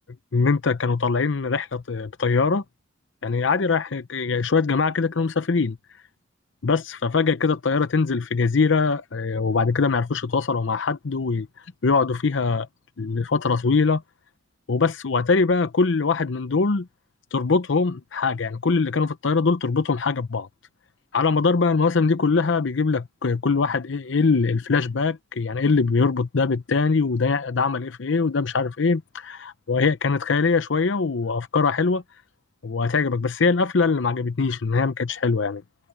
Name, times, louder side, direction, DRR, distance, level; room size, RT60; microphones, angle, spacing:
voice 1, 0.3-2.6 3.2-5.8 6.6-11.5 11.8-12.7 13.0-14.0 14.7-16.9 17.3-20.5 21.1-32.0 32.6-35.6, left 4 dB, 70° left, 0.7 m, -22 dB
head